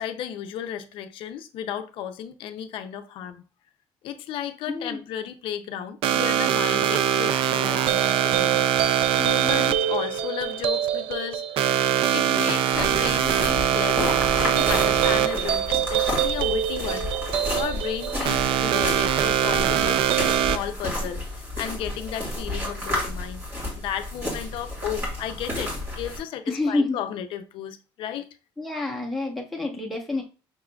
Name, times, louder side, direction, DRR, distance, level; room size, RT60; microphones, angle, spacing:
voice 1, 0.0-3.4 4.0-11.6 12.1-17.1 17.5-20.0 20.5-23.4 23.8-28.3, left 9 dB, 65° left, 0.5 m, -34 dB
voice 2, 4.7-5.0 26.5-27.0 28.6-30.2, left 2 dB, ahead, 0.9 m, -27 dB
sound 1, 6.0-20.6, right 10 dB, 70° right, 0.4 m, -23 dB
sound 2, 12.7-26.2, left 1 dB, 25° right, 2.3 m, -31 dB
5.8 x 3.6 x 2.3 m
cardioid pair, 175°, 10 cm